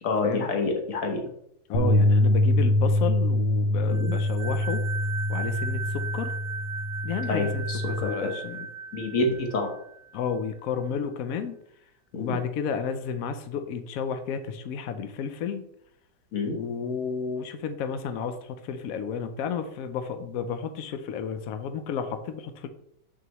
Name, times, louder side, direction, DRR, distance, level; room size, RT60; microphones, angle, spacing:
voice 1, 0.0-1.2 3.9-4.1 7.3-8.3 8.9-9.7 12.1-12.4 16.3-16.6, left 3 dB, 45° left, 3 dB, 1.4 m, -28 dB
voice 2, 1.7-4.8 5.3-6.3 7.0-8.7 10.1-11.5 12.1-15.7 16.5-22.7, left 7 dB, 85° left, 8 dB, 0.7 m, -32 dB
sound 1, 1.7-8.0, left 1 dB, 70° left, 2.0 m, -24 dB
sound 2, 3.9-10.4, right 5 dB, 80° right, 1.3 m, -37 dB
6.9 x 6.2 x 3.0 m, 0.71 s
omnidirectional pair, 2.2 m